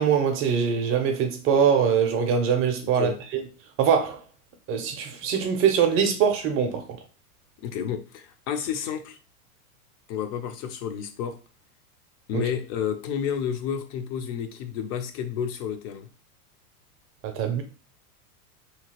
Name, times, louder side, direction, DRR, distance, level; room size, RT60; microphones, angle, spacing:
voice 1, 0.0-3.4 3.8-4.2 4.7-6.8 12.3-12.4 17.2-17.6, right 7 dB, 30° right, 0.4 m, -23 dB
voice 2, 2.8-3.2 7.6-9.2 10.1-11.4 12.3-16.1, left 8 dB, 35° left, 0.5 m, -31 dB
2.9 x 2.7 x 2.8 m
hypercardioid pair, 110°, 46 cm